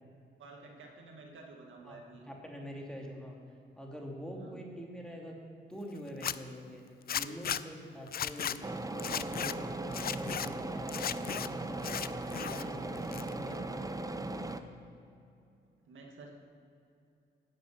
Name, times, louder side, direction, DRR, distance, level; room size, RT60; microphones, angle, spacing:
voice 1, 0.4-2.2 4.4-4.6 15.9-16.3, right 3 dB, 70° right, 1 dB, 2.0 m, -51 dB
voice 2, 2.3-3.4 3.7-5.4 5.7-6.8 7.1-12.1 12.5-13.8, equal, 5° left, -1 dB, 2.8 m, -45 dB
Zipper (clothing), 6.1-6.3 7.1-7.6 8.1-8.6 9.0-9.5 9.9-10.5 10.9-11.5 11.8-12.6 12.9-13.6, left 9 dB, 45° left, 0.5 m, -35 dB
sound 1, 8.6-14.6, right 2 dB, 15° right, 0.8 m, -38 dB
10.5 x 6.9 x 8.1 m, 2.6 s
supercardioid pair, 60°, 21 cm